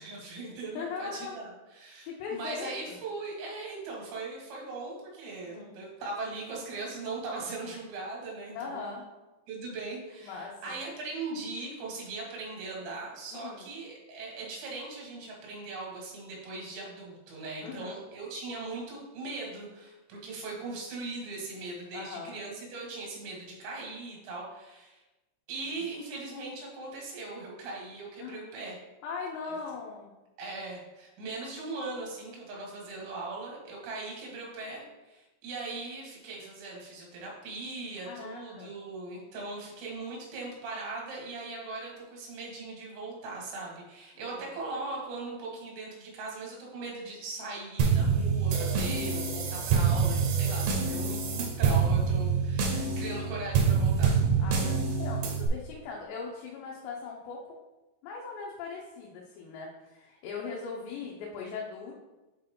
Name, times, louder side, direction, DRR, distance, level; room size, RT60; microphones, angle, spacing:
voice 1, 0.0-8.9 9.5-25.0 25.5-28.8 30.4-54.2, right 3 dB, 85° right, -2 dB, 4.0 m, -39 dB
voice 2, 0.7-1.4 2.1-3.0 5.4-5.8 8.5-9.0 10.2-10.8 13.3-13.7 17.6-17.9 21.9-22.3 28.2-28.5 29.0-30.1 38.0-38.7 44.2-44.4 48.2-48.3 54.4-57.6 58.0-61.9, left 5 dB, 85° left, -2 dB, 3.1 m, -40 dB
sound 1, 47.8-55.5, right 5 dB, 70° right, 2.3 m, -26 dB
7.7 x 4.6 x 3.7 m, 1.1 s
omnidirectional pair, 4.9 m